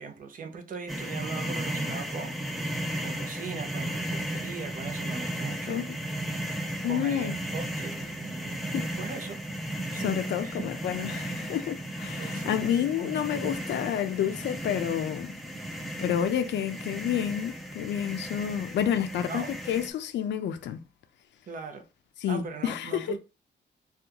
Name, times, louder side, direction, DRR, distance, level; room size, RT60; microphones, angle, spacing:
voice 1, 0.0-2.6 3.0-5.9 6.9-9.4 9.9-10.6 12.2-13.3 19.3-19.5 21.5-21.9 22.3-23.2, right 5 dB, 45° right, 0.6 m, -40 dB
sound 1, 0.9-19.9, right 1 dB, ahead, 0.4 m, -35 dB
voice 2, 6.8-7.4 8.7-8.9 10.0-15.3 16.0-20.8 22.2-23.1, left 9 dB, 75° left, 0.4 m, -29 dB
2.8 x 2.3 x 3.6 m
wide cardioid pair, 160°, 19 cm